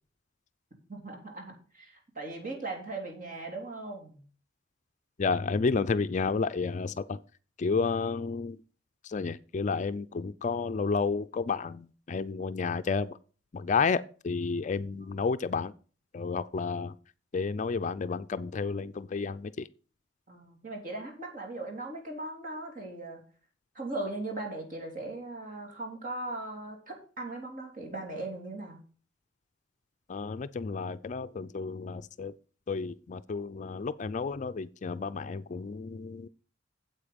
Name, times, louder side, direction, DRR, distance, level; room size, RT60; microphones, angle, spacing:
voice 1, 0.9-4.2 15.0-15.2 20.3-23.2 23.7-28.8, right 2 dB, 45° right, 3.3 m, -39 dB
voice 2, 5.2-7.2 7.6-8.6 9.0-13.2 13.5-15.7 16.1-16.9 17.3-19.7 30.1-32.3 32.7-36.3, left 4 dB, 40° left, 0.4 m, -31 dB
8.7 x 7.9 x 5.2 m
head